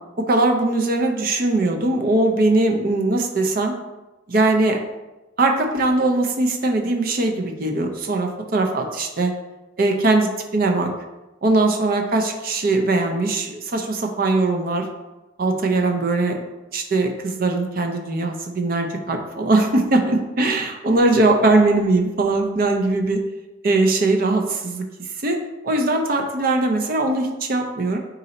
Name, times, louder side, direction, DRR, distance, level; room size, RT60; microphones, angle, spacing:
voice 1, 0.3-3.7 4.3-4.8 5.4-9.3 9.8-10.9 11.4-14.9 15.4-16.4 16.7-23.2 23.6-24.8 25.2-25.4 25.6-28.0, right 2 dB, 50° right, 3 dB, 0.5 m, -20 dB
4.2 x 2.6 x 3.9 m, 1.1 s
head